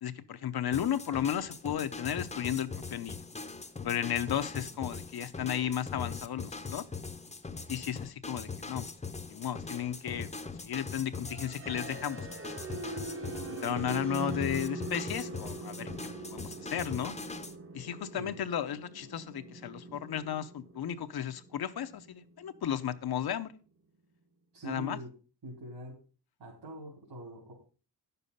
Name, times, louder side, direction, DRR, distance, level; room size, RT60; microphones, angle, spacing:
voice 1, 0.0-3.2 3.8-6.8 7.7-8.9 9.3-10.3 10.6-12.3 13.5-15.9 16.3-17.2 17.7-23.5 24.6-25.0, left 9 dB, 60° left, 10 dB, 0.8 m, -34 dB
sound 1, 0.7-17.6, left 4 dB, 15° left, 0.7 m, -41 dB
sound 2, 11.2-23.1, right 3 dB, 30° right, 1.0 m, -43 dB
voice 2, 24.5-25.1 25.4-26.0 26.4-27.5, right 1 dB, 65° right, -4 dB, 4.0 m, -43 dB
11.0 x 6.9 x 5.5 m, 0.37 s
wide cardioid pair, 155°, 42 cm